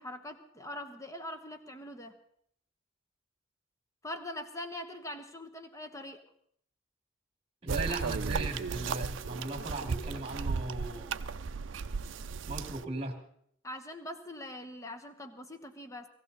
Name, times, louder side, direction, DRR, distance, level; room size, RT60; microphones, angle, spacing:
voice 1, 0.0-2.1 4.0-6.2 13.6-16.1, left 1 dB, 15° left, 7 dB, 1.2 m, -42 dB
voice 2, 7.6-11.2 12.4-13.2, right 2 dB, 30° right, 5 dB, 2.1 m, -37 dB
sound 1, 7.7-12.8, right 5 dB, 70° right, 0.5 m, -35 dB
19.0 x 15.5 x 4.0 m, 0.68 s
head